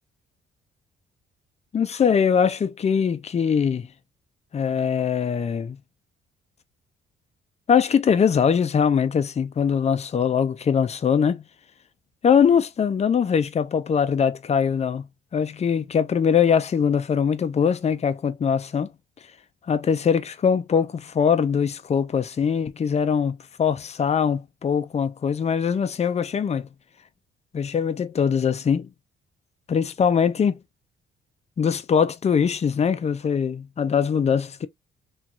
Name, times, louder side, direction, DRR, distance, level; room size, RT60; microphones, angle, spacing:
voice 1, 1.7-3.9 4.5-5.8 7.7-11.4 12.2-15.1 15.3-18.9 19.7-26.7 27.5-28.9 29.7-30.6 31.6-34.7, left 7 dB, 35° left, 0.6 m, -22 dB
3.2 x 2.8 x 2.4 m
cardioid pair, 90°, 20 cm